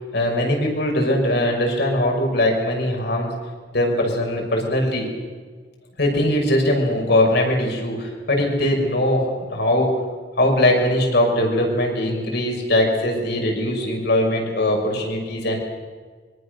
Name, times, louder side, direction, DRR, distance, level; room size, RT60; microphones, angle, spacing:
voice 1, 0.1-3.3 3.7-5.1 6.0-9.9 10.4-15.6, left 1 dB, 65° left, 1 dB, 6.2 m, -21 dB
25.0 x 24.0 x 6.7 m, 1.5 s
head